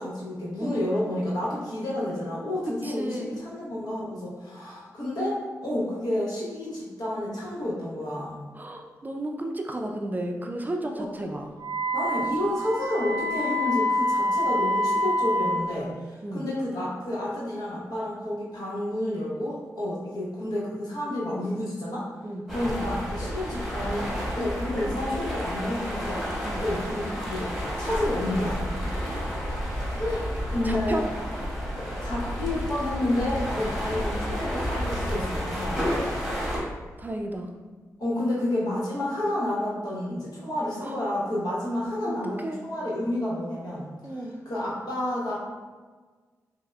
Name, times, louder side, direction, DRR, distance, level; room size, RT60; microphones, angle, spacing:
voice 1, 0.0-8.4 10.9-11.1 11.9-22.1 22.5-24.1 24.4-26.2 26.6-27.5 27.8-28.6 29.9-31.0 32.0-36.1 38.0-43.9 44.1-45.3, left 1 dB, 75° left, -7 dB, 1.0 m, -30 dB
voice 2, 2.8-3.4 8.5-11.5 16.2-16.5 22.2-22.4 26.4-26.6 29.0-29.3 30.6-31.0 33.6-33.7 36.4-36.7 37.0-37.5 40.8-40.9 42.0-42.6 44.0-44.3, right 1 dB, 25° right, 2 dB, 0.4 m, -33 dB
Wind instrument woodwind instrument, 11.6-15.6, equal, 90° right, 0.5 m, -26 dB
sound 1, 22.5-36.6, equal, ahead, 1.2 m, -31 dB
5.5 x 2.1 x 2.2 m, 1.4 s
cardioid pair, 50°, 7 cm